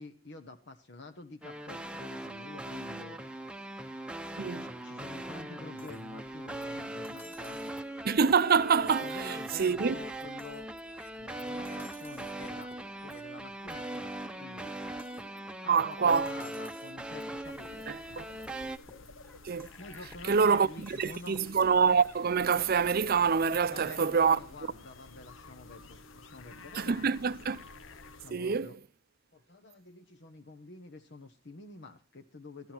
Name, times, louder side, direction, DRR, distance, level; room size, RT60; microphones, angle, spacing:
voice 1, 0.0-3.2 4.6-7.6 9.0-10.7 11.1-12.8 13.0-14.7 15.6-18.4 19.8-21.4 23.5-27.1 28.2-28.8 29.3-32.7, left 3 dB, 60° left, 1.3 m, -48 dB
sound 1, 1.4-18.8, right 1 dB, 5° right, 0.8 m, -40 dB
sound 2, 5.8-22.4, left 1 dB, 10° left, 2.1 m, -57 dB
voice 2, 8.0-10.0 15.7-16.3 17.9-18.2 19.4-19.7 20.3-24.4 26.8-27.6 28.3-28.7, right 6 dB, 50° right, 0.6 m, -26 dB
sound 3, 17.4-28.3, left 4 dB, 85° left, 1.0 m, -52 dB
14.0 x 12.5 x 4.5 m
head